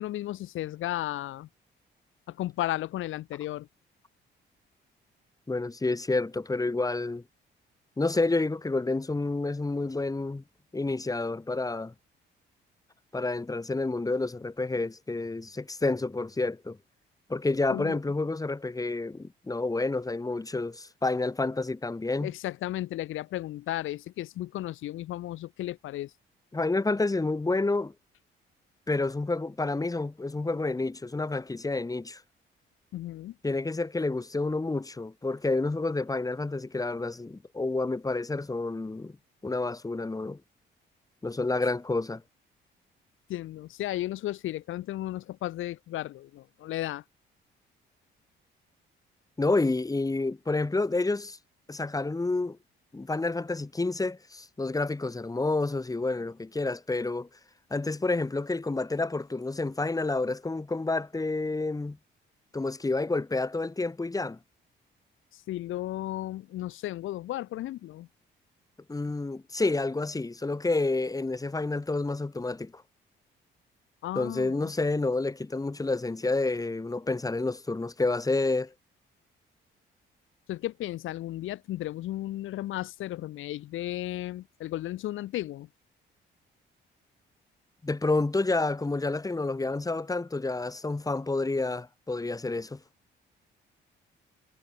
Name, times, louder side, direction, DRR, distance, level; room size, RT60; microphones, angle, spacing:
voice 1, 0.0-1.5 2.3-3.7 17.7-18.0 22.2-26.1 32.9-33.3 43.3-47.0 65.3-68.1 74.0-74.7 80.5-85.7, left 14 dB, 85° left, 4.0 m, -34 dB
voice 2, 5.5-7.2 8.0-10.4 10.7-11.9 13.1-16.8 17.3-22.3 26.5-27.9 28.9-32.2 33.4-39.1 39.4-40.4 41.2-42.2 49.4-51.4 51.7-52.6 52.9-57.3 57.7-62.0 62.5-64.4 68.9-72.7 74.2-78.7 87.8-92.8, left 3 dB, 20° left, 2.6 m, -29 dB
cardioid pair, 90°, 20 cm